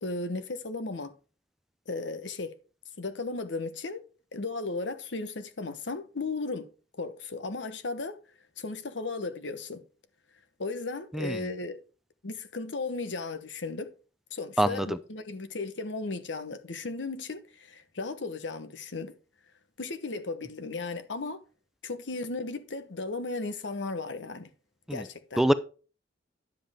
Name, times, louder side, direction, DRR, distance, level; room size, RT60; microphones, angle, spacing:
voice 1, 0.0-1.1 1.9-2.5 3.0-4.0 4.3-6.7 7.0-8.2 8.6-9.8 10.6-11.8 12.2-13.9 14.3-19.1 19.8-21.4 21.8-24.5 24.9-25.4, left 3 dB, 80° left, 1.0 m, -35 dB
voice 2, 11.1-11.4 14.6-15.0 24.9-25.0 25.4-25.5, right 1 dB, ahead, 0.5 m, -25 dB
10.5 x 7.5 x 3.6 m
head